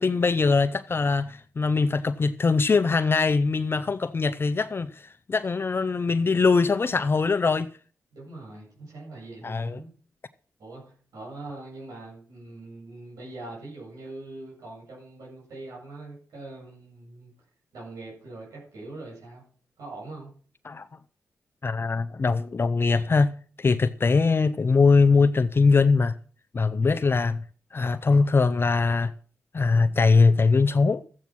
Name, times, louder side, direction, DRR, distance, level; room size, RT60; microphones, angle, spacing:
voice 1, 0.0-7.7 9.4-9.8 20.6-20.9 21.6-23.3 23.6-26.1 26.5-27.4 27.7-29.1 29.5-31.0, left 4 dB, 40° left, 0.6 m, -22 dB
voice 2, 8.1-9.9 10.6-10.8 11.1-17.3 17.7-19.4 19.8-20.3, right 2 dB, 90° right, 7.9 m, -42 dB
13.5 x 8.3 x 6.1 m
cardioid pair, 60°, 6 cm